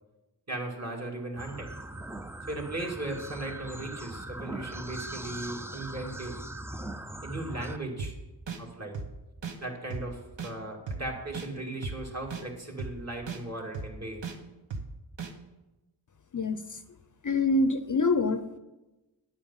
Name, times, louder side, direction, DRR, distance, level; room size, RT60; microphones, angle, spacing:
voice 1, 0.5-1.7 2.5-6.3 7.2-8.1 8.6-9.0 9.6-14.2, right 2 dB, 35° right, -1 dB, 2.5 m, -37 dB
sound 1, 1.4-7.8, right 1 dB, 5° right, 0.5 m, -40 dB
sound 2, 8.0-8.1 8.5-8.6 8.9-9.1 9.4-9.6 9.9-10.0 10.4-10.5 10.9-11.0 11.3-11.5 11.8-12.0 12.3-12.4 12.8-12.9 13.3-13.4 13.7-13.9 14.2-14.4 14.7-14.8 15.2-15.3, right 5 dB, 85° right, 1.2 m, -35 dB
voice 2, 17.2-18.6, left 3 dB, 45° left, 11 dB, 0.6 m, -25 dB
9.7 x 8.7 x 5.6 m, 1.1 s
wide cardioid pair, 60°, 43 cm